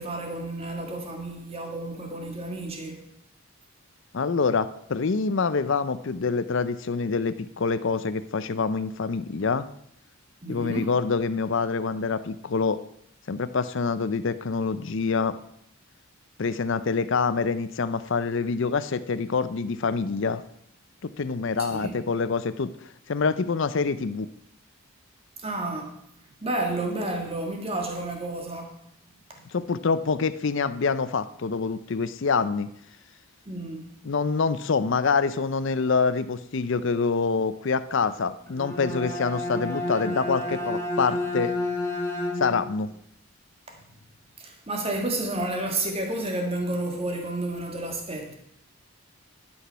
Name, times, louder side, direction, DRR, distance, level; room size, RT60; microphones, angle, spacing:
voice 1, 0.0-3.1 10.4-10.9 21.7-21.9 25.4-25.9 26.4-28.8 29.3-29.4 33.4-33.9 44.4-48.3, right 2 dB, 25° right, 2 dB, 1.6 m, -31 dB
voice 2, 4.1-9.7 10.5-12.8 13.3-15.4 16.4-20.4 21.0-24.3 29.5-32.7 34.0-41.6 42.4-42.9, left 4 dB, 55° left, 14 dB, 0.5 m, -26 dB
Bowed string instrument, 38.5-42.8, left 1 dB, 15° left, 1.5 m, -30 dB
11.5 x 6.1 x 5.6 m, 0.74 s
head